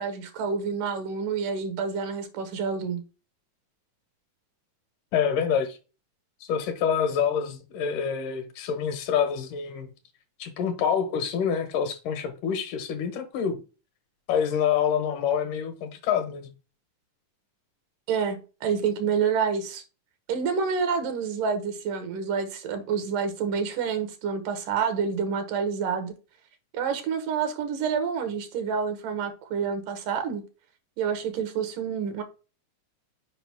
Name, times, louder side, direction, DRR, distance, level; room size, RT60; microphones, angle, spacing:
voice 1, 0.0-3.0 18.1-19.8 20.3-26.1 26.7-30.4 31.0-32.2, right 6 dB, 85° right, 2.9 m, -28 dB
voice 2, 5.1-5.8 6.4-9.9 10.4-13.6 14.3-16.5, left 7 dB, 85° left, 2.7 m, -26 dB
6.9 x 5.1 x 3.5 m
omnidirectional pair, 3.6 m